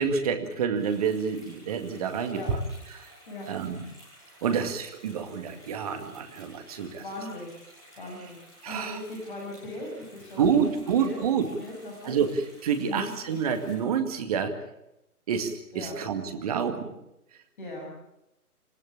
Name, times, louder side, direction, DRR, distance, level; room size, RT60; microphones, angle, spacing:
voice 1, 0.0-2.6 2.9-3.1 3.5-3.8 4.4-7.0 8.6-9.0 10.4-11.5 12.0-14.6 15.3-16.9, right 7 dB, 25° right, 7 dB, 2.1 m, -28 dB
sound 1, 0.7-13.8, equal, 10° left, 8.0 m, -54 dB
voice 2, 7.0-7.5 8.0-10.7 11.0-11.2 11.6-12.2 12.8-13.1 15.7-16.0 17.6-18.0, left 1 dB, 35° left, -2 dB, 6.6 m, -39 dB
28.0 x 14.5 x 8.7 m, 0.85 s
figure-of-eight pair, 140°, 45 cm